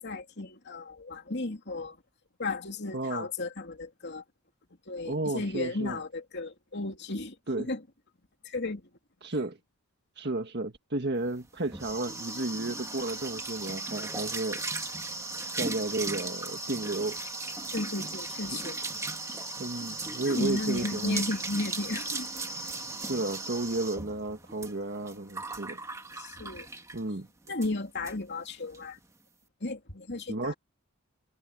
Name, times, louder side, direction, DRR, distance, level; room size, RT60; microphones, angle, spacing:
voice 1, 0.0-2.0 2.4-4.2 4.9-7.8 8.4-8.8 17.7-18.8 20.3-22.3 26.2-26.7 27.5-29.0 29.6-30.5, left 2 dB, 50° left, 3.0 m, -34 dB
voice 2, 2.9-3.3 5.0-6.0 7.5-7.7 9.2-9.6 10.2-14.6 15.6-17.2 19.6-21.2 23.0-25.8 26.9-27.3 30.3-30.5, right 2 dB, 50° right, 1.7 m, -33 dB
sound 1, 11.3-27.1 27.5-27.7 28.0-28.1 28.4-28.8, right 3 dB, 15° right, 1.9 m, -37 dB
head